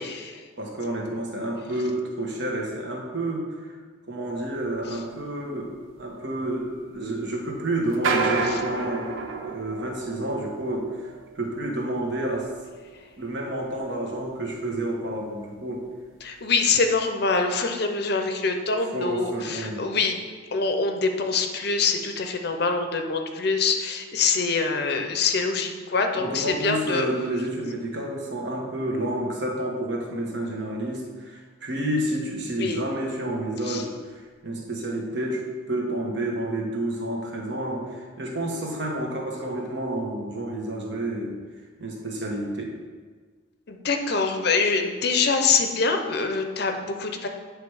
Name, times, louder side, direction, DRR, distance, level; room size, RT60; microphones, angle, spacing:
voice 1, 0.0-0.4 8.4-8.6 16.2-20.2 20.5-27.1 32.6-32.8 33.6-33.8 43.7-47.3, left 4 dB, 55° left, 5 dB, 0.6 m, -25 dB
voice 2, 0.6-3.7 4.1-5.7 6.0-9.1 9.4-12.5 13.2-15.9 18.9-19.8 26.2-41.3 41.8-42.7, right 1 dB, 60° right, 0 dB, 1.2 m, -30 dB
sound 1, 4.6-4.7 5.0-5.1 5.8-6.0 6.7-6.9 7.8-14.2 14.7-15.0 15.2-15.3 15.8-15.9 16.5-16.6, right 4 dB, 80° right, 0.7 m, -32 dB
8.9 x 3.3 x 4.8 m, 1.5 s
head